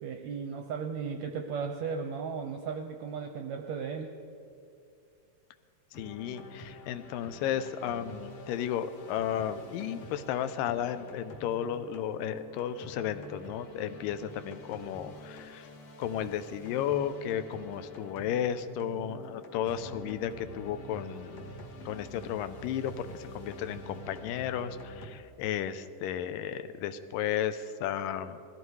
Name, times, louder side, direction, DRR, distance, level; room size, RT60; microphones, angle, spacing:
voice 1, 0.0-4.1, right 6 dB, 75° right, 4 dB, 1.7 m, -36 dB
sound 1, 5.9-25.1, equal, 55° left, 1.9 m, -47 dB
voice 2, 6.0-15.7 16.0-21.5 21.9-28.4, left 9 dB, 80° left, 11 dB, 2.3 m, -34 dB
19.5 x 14.5 x 4.7 m, 2.4 s
omnidirectional pair, 4.0 m